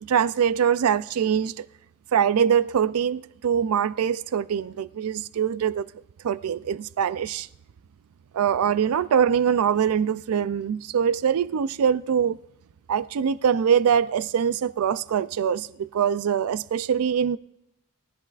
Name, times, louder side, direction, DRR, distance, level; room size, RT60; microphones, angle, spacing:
voice 1, 0.0-1.7 2.1-5.9 6.2-7.5 8.3-12.4 12.9-17.4, right 8 dB, 85° right, 0.4 m, -23 dB
21.0 x 14.0 x 2.4 m
head